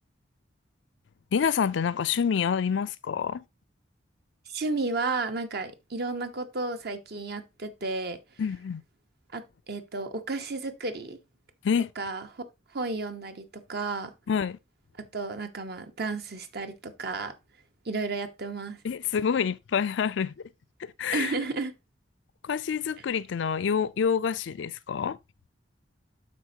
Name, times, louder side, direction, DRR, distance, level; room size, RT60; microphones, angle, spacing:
voice 1, 1.3-3.4 8.4-8.8 11.6-11.9 14.3-14.6 18.8-20.5 20.8-21.3 22.4-25.2, left 7 dB, 75° left, 0.4 m, -27 dB
voice 2, 4.5-8.2 9.3-11.2 12.0-12.4 12.7-14.1 15.1-17.3 17.8-18.8 21.1-21.7, right 3 dB, 60° right, 1.1 m, -32 dB
12.0 x 4.3 x 2.8 m
head